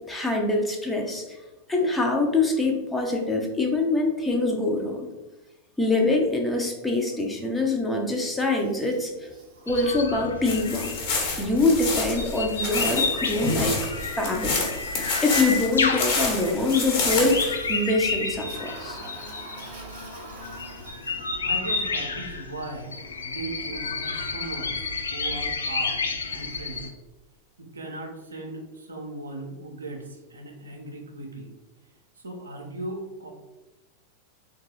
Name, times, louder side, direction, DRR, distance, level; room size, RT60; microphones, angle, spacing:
voice 1, 0.1-1.4 1.7-5.1 5.8-9.1 9.7-14.7 15.2-19.0, left 2 dB, 10° left, 1 dB, 0.5 m, -24 dB
Toilet flush, 8.4-10.7 17.4-21.6, right 2 dB, 45° right, 0.9 m, -45 dB
sound 1, 9.7-26.9, left 4 dB, 70° left, 0.4 m, -31 dB
sound 2, 10.4-17.5, left 4 dB, 45° left, 1.2 m, -29 dB
voice 2, 21.4-24.8 25.1-26.9 27.6-31.5 32.2-33.3, right 2 dB, 75° right, 2 dB, 0.6 m, -38 dB
3.6 x 2.3 x 3.1 m, 1.1 s
figure-of-eight pair, 90°, 0 cm